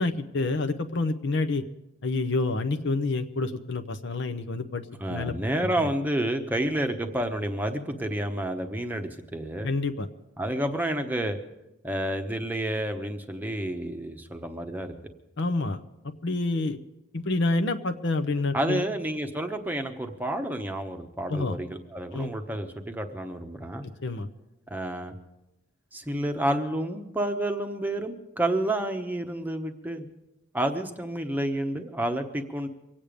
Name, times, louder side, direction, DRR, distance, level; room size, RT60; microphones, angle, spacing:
voice 1, 0.0-1.6 2.0-4.8 5.1-5.3 5.8-5.9 9.6-10.1 15.4-16.8 17.1-18.8 21.3-21.6 22.1-22.3 24.0-24.3, left 3 dB, 55° left, 9 dB, 0.8 m, -28 dB
voice 2, 5.0-9.7 10.4-11.4 11.8-14.9 18.5-23.9 24.7-25.1 25.9-30.1 30.5-32.7, right 1 dB, 10° right, 5 dB, 0.9 m, -30 dB
24.5 x 8.7 x 5.1 m, 0.94 s
head